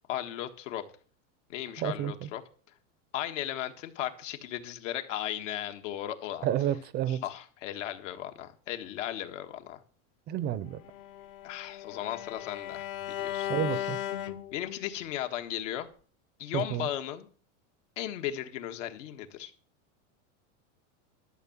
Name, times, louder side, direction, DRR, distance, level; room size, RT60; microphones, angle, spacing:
voice 1, 0.1-0.8 1.5-2.4 3.1-6.5 7.1-9.8 11.4-13.9 14.5-15.9 16.4-17.3 18.0-19.5, left 12 dB, 70° left, 1.7 m, -36 dB
voice 2, 1.8-2.3 6.4-7.2 10.3-10.8 13.5-14.0 16.5-16.9, right 11 dB, 25° right, 0.6 m, -30 dB
Bowed string instrument, 10.8-15.0, left 12 dB, 40° left, 0.7 m, -37 dB
12.5 x 6.5 x 7.3 m
supercardioid pair, 155°, 39 cm